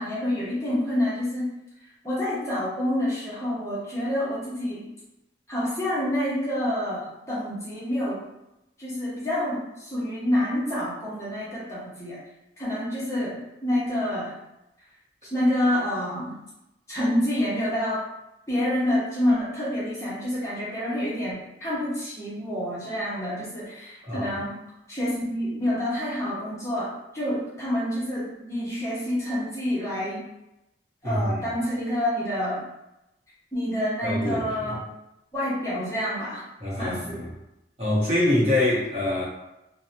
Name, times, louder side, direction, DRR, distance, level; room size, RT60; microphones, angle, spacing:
voice 1, 0.0-1.5 2.0-4.8 5.5-8.2 8.8-12.2 12.6-14.3 15.3-16.3 16.9-18.0 18.5-24.6 24.9-30.2 31.0-32.7 33.5-34.8 35.3-36.5 36.8-37.2, left 1 dB, 15° left, -8 dB, 0.6 m, -27 dB
voice 2, 24.0-24.4 31.0-31.4 34.0-34.8 36.6-37.3 37.8-39.3, left 1 dB, 35° right, -6 dB, 0.7 m, -25 dB
2.6 x 2.0 x 2.7 m, 0.91 s
head